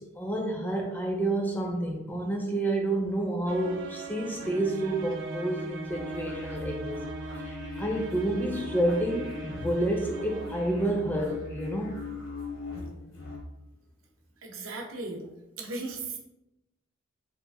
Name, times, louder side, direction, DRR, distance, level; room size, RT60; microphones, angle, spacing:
voice 1, 0.0-7.0 7.5-12.0, right 1 dB, 10° left, 1 dB, 0.4 m, -29 dB
sound 1, 3.5-11.8, right 3 dB, 55° right, 0.3 m, -40 dB
sound 2, 5.9-13.4, left 2 dB, 80° left, 1.1 m, -40 dB
voice 2, 14.4-15.3 15.6-16.2, right 3 dB, 85° right, 1 dB, 0.7 m, -36 dB
2.9 x 2.4 x 3.5 m, 0.91 s
head